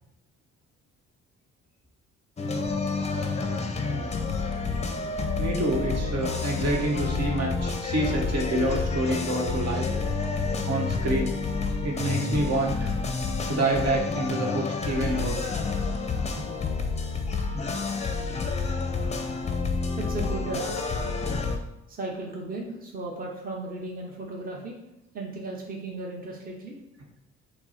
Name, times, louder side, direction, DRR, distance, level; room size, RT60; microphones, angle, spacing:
sound 1, 2.4-21.6, left 4 dB, 20° left, 0.5 m, -29 dB
voice 1, 5.4-9.9 10.6-11.4 11.8-12.9 13.5-15.4, right 1 dB, 55° right, 0 dB, 1.1 m, -27 dB
voice 2, 20.0-20.7 21.9-24.8 25.1-26.8, right 2 dB, 30° right, -1 dB, 0.9 m, -35 dB
5.8 x 2.0 x 4.2 m, 0.89 s
cardioid pair, 90°, 30 cm